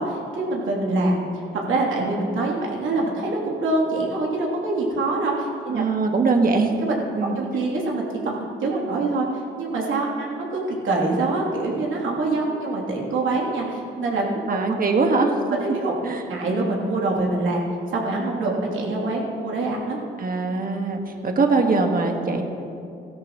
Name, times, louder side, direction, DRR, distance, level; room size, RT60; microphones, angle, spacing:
voice 1, 0.0-1.4 1.7-5.8 6.8-7.0 7.3-14.6 15.5-17.6 17.9-20.0 21.1-21.2, right 2 dB, 75° right, -3 dB, 3.0 m, -25 dB
voice 2, 5.7-6.8 7.2-7.4 14.5-15.6 16.0-16.2 20.2-22.4, right 3 dB, 45° right, 3 dB, 1.6 m, -22 dB
17.0 x 13.0 x 3.0 m, 2.5 s
supercardioid pair, 60°, 21 cm